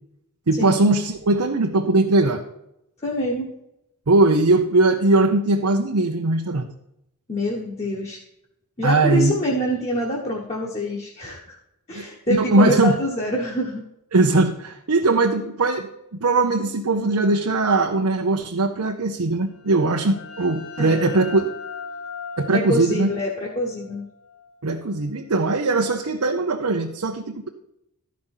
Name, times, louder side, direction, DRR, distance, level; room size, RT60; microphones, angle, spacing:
voice 1, 0.5-2.4 4.1-6.7 8.8-9.3 11.9-13.0 14.1-21.4 22.4-23.1 24.6-27.5, right 2 dB, 75° right, 3 dB, 0.8 m, -20 dB
voice 2, 3.0-3.5 7.3-8.2 8.8-11.6 11.9-13.8 20.8-21.1 22.5-24.1, equal, 30° left, -3 dB, 1.4 m, -25 dB
sound 1, 19.5-25.0, left 5 dB, 65° left, 1.6 m, -39 dB
12.5 x 5.2 x 5.6 m, 0.82 s
head